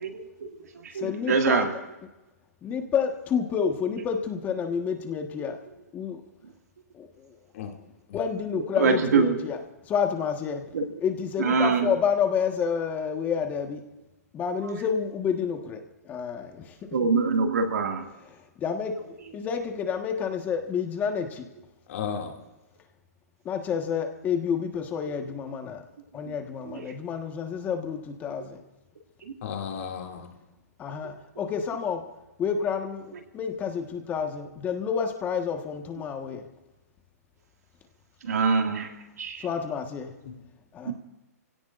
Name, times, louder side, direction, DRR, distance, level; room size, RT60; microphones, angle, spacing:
voice 1, 0.0-1.7 8.5-9.5 10.7-10.9 11.4-11.9 14.5-14.9 16.9-18.1 25.1-25.2 26.2-26.3 26.6-26.9 29.2-29.4 31.0-31.1 38.2-39.5 40.8-40.9, right 4 dB, 75° right, 3 dB, 2.3 m, -25 dB
voice 2, 0.9-1.6 2.6-5.6 5.9-6.2 6.9-7.4 8.1-9.6 9.8-10.7 11.0-13.8 14.3-16.8 18.4-21.5 23.4-25.8 26.1-28.6 30.8-32.0 32.4-36.5 39.4-40.1 40.7-40.9, left 7 dB, 20° left, 5 dB, 1.5 m, -29 dB
voice 3, 21.9-22.3 29.4-30.3 40.2-40.4, left 7 dB, 55° left, 1 dB, 2.6 m, -34 dB
26.5 x 17.0 x 2.6 m, 1.0 s
hypercardioid pair, 145°, 9 cm